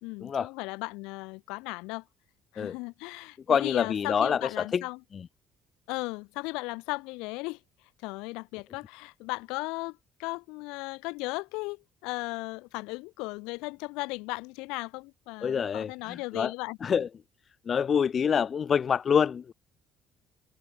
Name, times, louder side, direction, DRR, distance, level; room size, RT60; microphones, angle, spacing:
voice 1, 0.0-2.0 2.5-5.0 5.9-7.6 8.0-16.8, left 26 dB, 65° left, 1.3 m, -36 dB
voice 2, 3.5-4.8 15.4-16.5 16.8-17.1 17.7-19.5, left 7 dB, 40° left, 0.3 m, -26 dB
figure-of-eight pair, 50°, 0 cm